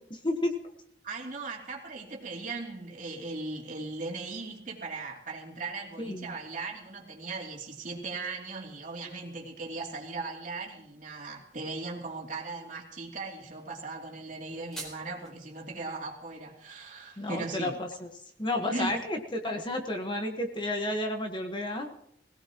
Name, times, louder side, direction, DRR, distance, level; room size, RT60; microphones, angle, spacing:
voice 1, 0.1-0.6 6.0-6.3 17.2-18.1 18.4-22.0, left 1 dB, 25° left, 3 dB, 1.4 m, -31 dB
voice 2, 1.0-17.8 18.7-18.9, right 3 dB, 45° right, -1 dB, 3.0 m, -38 dB
sound 1, 14.3-15.3, right 2 dB, 5° left, 4.0 m, -44 dB
22.0 x 17.0 x 3.0 m, 0.73 s
head